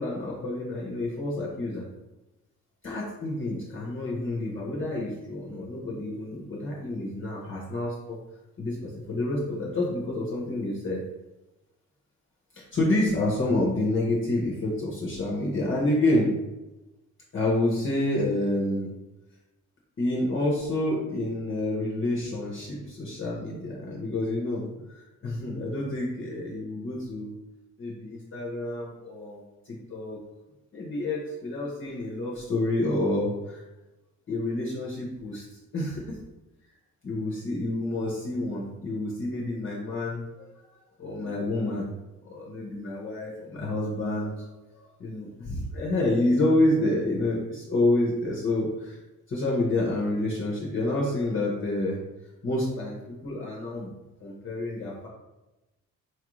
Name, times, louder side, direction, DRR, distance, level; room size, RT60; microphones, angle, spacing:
voice 1, 0.0-1.8 2.8-8.2 8.6-11.0 12.5-16.3 17.3-18.9 20.0-27.3 27.8-29.4 29.7-30.2 30.7-33.6 34.3-35.4 35.7-36.2 37.0-40.5 41.0-41.9 42.2-49.0 49.3-52.0 52.4-53.9 54.2-55.1, left 1 dB, 40° left, -4 dB, 0.7 m, -28 dB
4.4 x 2.4 x 3.0 m, 1.0 s
wide cardioid pair, 135°, 32 cm